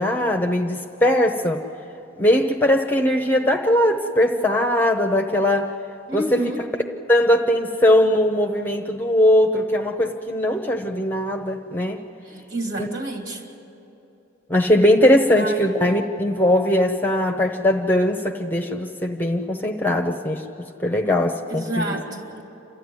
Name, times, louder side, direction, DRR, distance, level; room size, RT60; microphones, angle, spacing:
voice 1, 0.0-1.6 2.2-5.7 6.1-6.4 7.1-12.0 12.8-12.9 14.5-20.4 20.8-22.0, left 1 dB, 10° left, 4 dB, 0.8 m, -20 dB
voice 2, 6.1-6.6 12.2-13.4 15.4-15.6 21.5-22.4, right 1 dB, 70° right, 2 dB, 3.1 m, -29 dB
29.0 x 13.5 x 9.7 m, 2.9 s
head